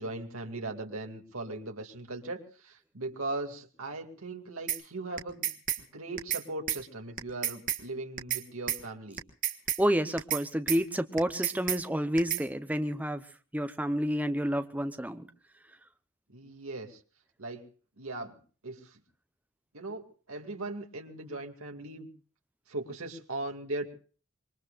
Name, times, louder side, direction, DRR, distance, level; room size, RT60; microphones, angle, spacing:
voice 1, 0.0-5.5 5.8-9.2 16.3-17.0 17.4-17.6 18.0-18.4 18.6-19.0 19.7-22.1 22.7-23.9, right 2 dB, 80° right, 3 dB, 2.3 m, -39 dB
sound 1, 4.7-4.8 5.2-5.8 6.2-6.4 6.7-6.8 7.2-7.8 8.2-8.4 8.7-8.8 9.2-9.8 10.2-10.4 10.7-10.8 11.2-11.8 12.2-12.4, right 10 dB, 40° right, 1.5 m, -30 dB
voice 2, 9.8-13.2 13.5-15.2, equal, 5° right, 8 dB, 0.8 m, -29 dB
26.0 x 22.5 x 2.5 m, 0.40 s
head